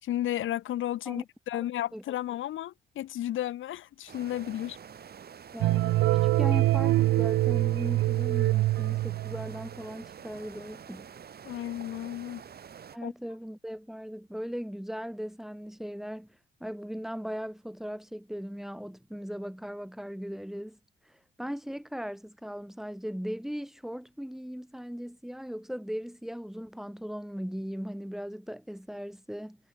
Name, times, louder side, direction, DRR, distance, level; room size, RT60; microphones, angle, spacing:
voice 1, 0.0-4.8 11.4-12.4 13.0-13.1, left 13 dB, 80° left, 6.6 m, -33 dB
sound 1, 4.1-13.0, right 7 dB, 50° right, 6.1 m, -47 dB
voice 2, 5.5-11.1 12.9-16.3 16.6-20.8 21.1-21.2 21.4-29.6, equal, ahead, 8.0 m, -38 dB
sound 2, 5.6-9.7, right 17 dB, 85° right, 0.6 m, -25 dB
cardioid pair, 90°, 20 cm